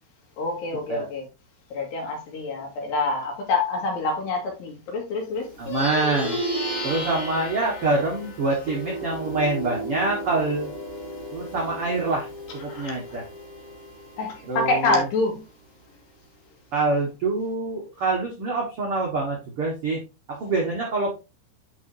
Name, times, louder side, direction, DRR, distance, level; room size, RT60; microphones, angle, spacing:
voice 1, 0.4-1.3 1.7-5.6 12.7-13.2 14.2-15.4, left 3 dB, 70° left, 4.0 m, -26 dB
Plucked string instrument, 5.5-15.2, equal, 40° left, 2.5 m, -34 dB
voice 2, 5.6-6.4 6.8-10.7 11.3-12.3 12.5-13.3 14.5-15.1 16.7-20.0 20.3-21.2, right 3 dB, 80° right, 1.2 m, -25 dB
10.5 x 4.2 x 2.7 m
omnidirectional pair, 5.1 m